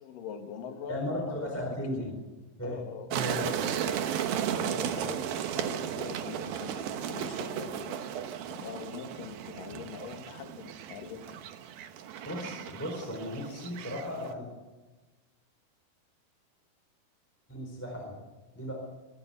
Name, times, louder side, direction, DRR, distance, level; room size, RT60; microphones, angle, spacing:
voice 1, 0.0-2.1 2.6-11.6, left 7 dB, 65° left, 5 dB, 3.0 m, -43 dB
voice 2, 0.9-2.1 2.6-2.8 3.1-3.5 12.2-14.5 17.5-18.1 18.6-18.7, equal, 5° left, -1 dB, 4.0 m, -35 dB
sound 1, 3.1-14.3, right 9 dB, 70° right, 2.9 m, -35 dB
23.5 x 13.5 x 8.2 m, 1.2 s
omnidirectional pair, 4.6 m